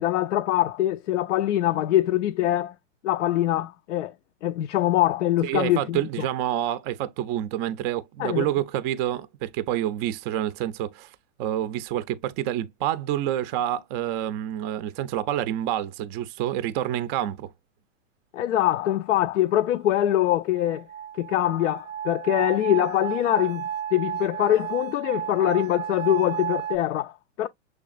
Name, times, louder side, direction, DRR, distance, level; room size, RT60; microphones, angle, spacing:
voice 1, 0.0-2.7 3.0-4.1 4.4-6.0 8.2-8.5 18.3-20.9 21.2-23.6 23.9-27.5, left 13 dB, 75° left, 0.5 m, -23 dB
voice 2, 5.4-17.5, right 12 dB, 30° right, 0.4 m, -28 dB
sound 1, 19.6-26.8, right 9 dB, 85° right, 0.6 m, -33 dB
6.2 x 3.3 x 2.3 m
hypercardioid pair, 115°, 37 cm